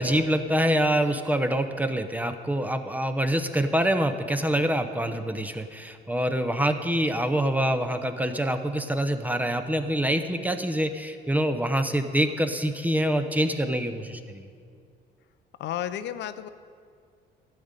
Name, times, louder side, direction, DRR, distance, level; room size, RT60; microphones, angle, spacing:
voice 1, 0.0-14.5, right 1 dB, 10° right, 7 dB, 0.7 m, -25 dB
voice 2, 15.6-16.5, left 11 dB, 65° left, 12 dB, 0.5 m, -32 dB
12.5 x 5.2 x 8.8 m, 2.3 s
cardioid pair, 105°, 20 cm